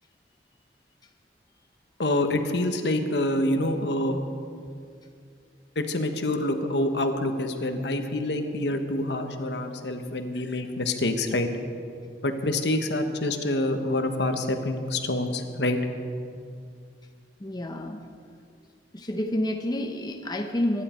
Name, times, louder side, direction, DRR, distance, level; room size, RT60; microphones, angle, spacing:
voice 1, 2.0-4.2 5.7-11.5 12.2-15.8, left 1 dB, 70° left, 6 dB, 1.3 m, -26 dB
voice 2, 17.4-18.0 18.9-20.8, left 1 dB, 25° left, 4 dB, 0.8 m, -29 dB
24.5 x 11.0 x 4.5 m, 2.3 s
head